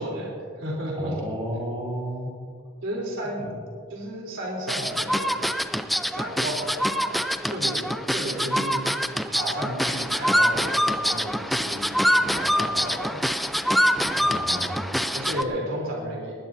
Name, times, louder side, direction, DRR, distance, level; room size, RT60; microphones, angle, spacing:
voice 1, 0.0-1.1 2.8-3.4 3.9-5.4 6.1-7.2 7.5-8.8 9.3-13.2 15.1-16.3, right 1 dB, 75° right, -2 dB, 3.5 m, -33 dB
voice 2, 0.9-2.3 3.4-3.5 14.2-15.1, equal, 30° right, -3 dB, 4.5 m, -33 dB
sound 1, 4.7-15.4, equal, ahead, 0.5 m, -25 dB
20.0 x 19.5 x 2.7 m, 2.1 s
head